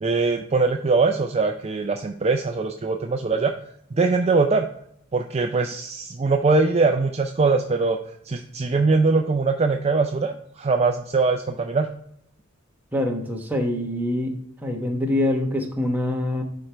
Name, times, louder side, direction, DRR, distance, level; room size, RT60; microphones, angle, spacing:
voice 1, 0.0-3.5 3.9-4.7 5.1-8.0 8.2-11.9, right 3 dB, 30° right, 5 dB, 0.4 m, -22 dB
voice 2, 12.9-14.3 14.6-16.4, left 1 dB, 10° right, 1 dB, 1.0 m, -24 dB
10.5 x 4.5 x 3.3 m, 0.72 s
head